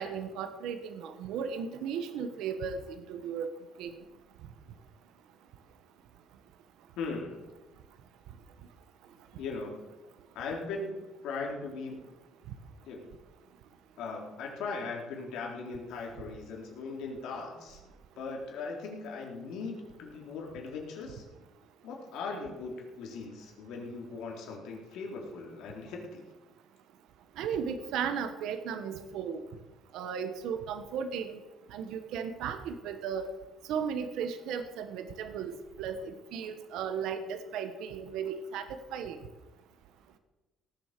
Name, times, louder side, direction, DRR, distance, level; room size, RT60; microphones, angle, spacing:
voice 1, 0.0-2.8 3.1-3.5 3.8-3.9 27.4-29.4 29.9-31.4 31.7-33.3 33.7-39.2, right 7 dB, 85° right, 9 dB, 1.3 m, -35 dB
voice 2, 7.0-7.5 9.4-9.9 10.3-12.0 12.9-13.1 14.0-17.8 18.2-21.2 21.8-26.2, left 4 dB, 85° left, 0 dB, 3.8 m, -39 dB
18.0 x 7.9 x 6.8 m, 1.1 s
cardioid pair, 145°, 0 cm